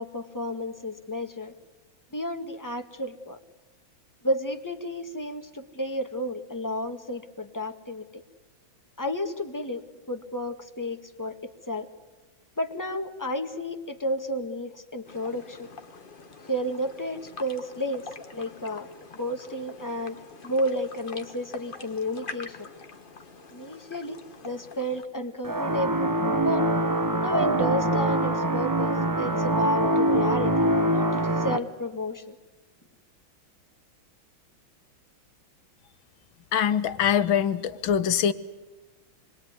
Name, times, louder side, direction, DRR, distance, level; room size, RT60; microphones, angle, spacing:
voice 1, 0.0-1.5 2.1-3.4 4.2-8.2 9.0-11.9 12.6-15.7 16.5-22.7 23.5-24.2 24.4-26.0 26.4-26.7 27.2-32.4, equal, 10° left, 6 dB, 1.5 m, -32 dB
sound 1, 15.0-25.0, left 4 dB, 30° left, 1.3 m, -45 dB
sound 2, 25.4-31.6, right 1 dB, 20° right, 0.5 m, -24 dB
voice 2, 36.5-38.3, left 8 dB, 80° left, 12 dB, 1.9 m, -23 dB
27.0 x 21.5 x 9.6 m, 1.2 s
omnidirectional pair, 2.2 m